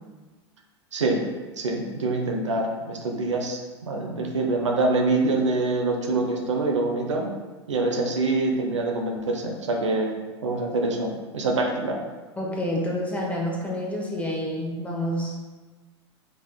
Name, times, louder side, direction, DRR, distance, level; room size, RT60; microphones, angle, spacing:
voice 1, 0.9-1.2 1.6-3.6 3.9-7.3 7.7-10.1 10.4-12.0, right 2 dB, 85° right, 1 dB, 0.7 m, -25 dB
voice 2, 12.4-15.4, left 1 dB, 10° left, -2 dB, 1.1 m, -28 dB
5.2 x 3.6 x 2.3 m, 1.3 s
hypercardioid pair, 95°, 15 cm